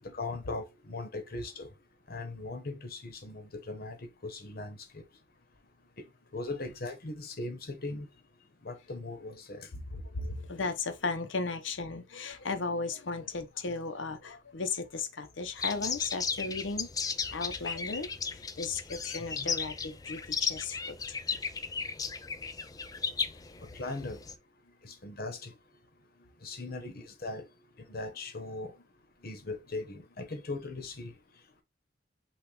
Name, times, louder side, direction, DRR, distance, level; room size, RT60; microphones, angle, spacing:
voice 1, 0.1-1.7 2.1-4.0 4.2-5.0 6.3-8.1 8.6-9.7 19.4-19.5 23.7-24.2 24.8-25.5 26.4-27.4 27.9-28.7 29.2-31.1, left 2 dB, 55° left, 1.0 m, -39 dB
voice 2, 9.9-16.9 17.3-21.2, left 4 dB, 80° left, 0.8 m, -35 dB
sound 1, 15.6-24.4, left 5 dB, 20° left, 0.3 m, -35 dB
6.0 x 2.4 x 3.3 m
head